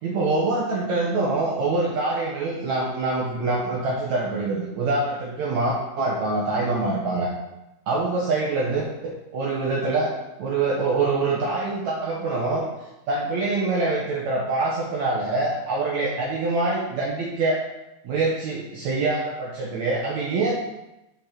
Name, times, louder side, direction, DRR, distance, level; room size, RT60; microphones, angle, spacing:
voice 1, 0.0-7.3 7.9-8.9 9.3-10.1 10.4-12.7 13.1-17.6 18.0-20.5, right 3 dB, 85° right, -4 dB, 1.6 m, -25 dB
6.9 x 5.6 x 5.9 m, 0.95 s
omnidirectional pair, 4.9 m